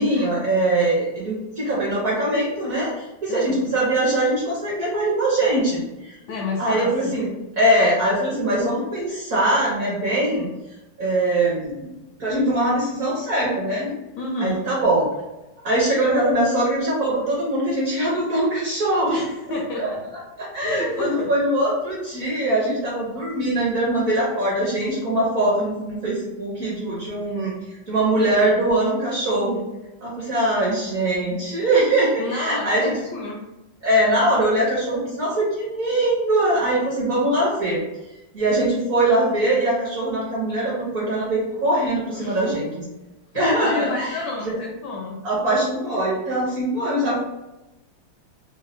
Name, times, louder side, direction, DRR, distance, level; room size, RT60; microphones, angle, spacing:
voice 1, 0.0-6.2 6.6-7.3 7.6-10.5 11.0-11.9 12.2-13.9 14.4-15.1 15.6-19.9 20.4-27.5 27.9-29.6 30.0-32.9 33.8-37.8 38.3-42.7 43.3-44.6 45.2-47.2, right 1 dB, 55° right, -5 dB, 1.0 m, -22 dB
voice 2, 3.3-3.7 6.3-7.2 14.2-14.6 19.1-20.0 20.6-21.3 32.2-33.4 42.1-42.6 43.3-45.2, left 2 dB, 80° left, -1 dB, 0.9 m, -30 dB
4.1 x 2.2 x 3.0 m, 0.98 s
omnidirectional pair, 2.3 m